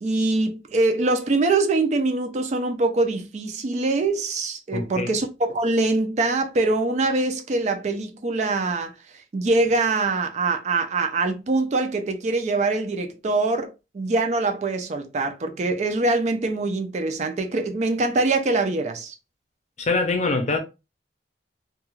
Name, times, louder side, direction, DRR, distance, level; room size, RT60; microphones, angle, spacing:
voice 1, 0.0-8.9 9.3-19.1, right 3 dB, 40° right, 0.4 m, -23 dB
voice 2, 4.7-5.1 19.8-20.6, left 3 dB, 40° left, 0.6 m, -24 dB
2.3 x 2.3 x 3.0 m
head